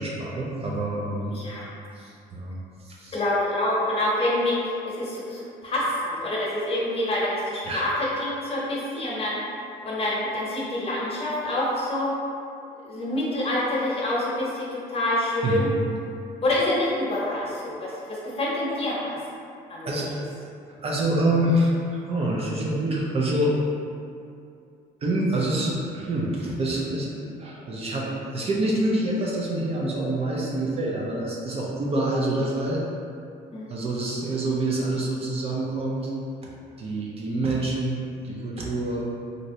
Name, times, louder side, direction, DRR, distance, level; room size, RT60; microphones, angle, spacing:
voice 1, 0.0-1.4 2.0-2.6 2.8-3.1 7.6-7.9 15.4-15.7 19.8-20.1 20.8-23.5 25.0-28.1 28.3-32.8 33.7-36.1 36.8-39.1, right 1 dB, 35° right, -4 dB, 0.5 m, -26 dB
voice 2, 1.3-1.7 3.1-9.4 9.8-12.1 12.8-15.7 16.4-19.1 19.7-20.1 33.5-33.7, left 1 dB, 35° left, -6 dB, 0.9 m, -27 dB
3.1 x 2.6 x 2.7 m, 2.5 s
cardioid pair, 110°, 17 cm